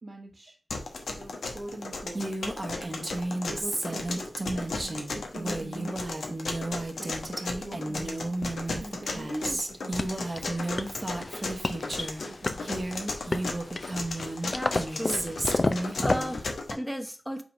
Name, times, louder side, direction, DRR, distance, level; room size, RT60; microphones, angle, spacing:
voice 1, 0.0-0.6 1.2-2.2 2.7-6.0 6.7-8.3 8.7-10.4 10.7-11.7 12.3-12.7, right 2 dB, 65° right, 1.5 m, -43 dB
sound 1, 0.7-16.7, left 3 dB, 90° left, 1.0 m, -36 dB
Female speech woman speaking, 2.1-12.2 12.6-16.5, right 2 dB, 45° right, 1.1 m, -33 dB
voice 2, 9.3-9.6 14.4-15.3 16.0-17.4, equal, ahead, 1.0 m, -34 dB
sound 2, 10.0-16.4, left 3 dB, 55° left, 0.6 m, -32 dB
5.2 x 3.8 x 5.1 m
cardioid pair, 40°, 0 cm